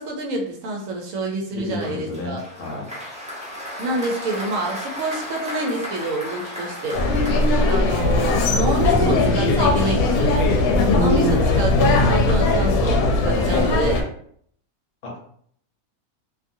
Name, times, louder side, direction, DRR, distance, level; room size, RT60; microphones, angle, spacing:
voice 1, 0.0-2.4 3.8-7.0 7.7-10.5 10.9-14.0, right 2 dB, 70° right, 0 dB, 1.0 m, -27 dB
voice 2, 1.5-2.9 15.0-15.2, left 3 dB, 65° left, -2 dB, 1.2 m, -31 dB
Applause, 1.8-8.9, left 1 dB, 5° right, 0.6 m, -35 dB
sound 1, 6.9-14.0, left 2 dB, 90° left, 1.1 m, -19 dB
2.6 x 2.6 x 2.6 m, 0.64 s
omnidirectional pair, 1.5 m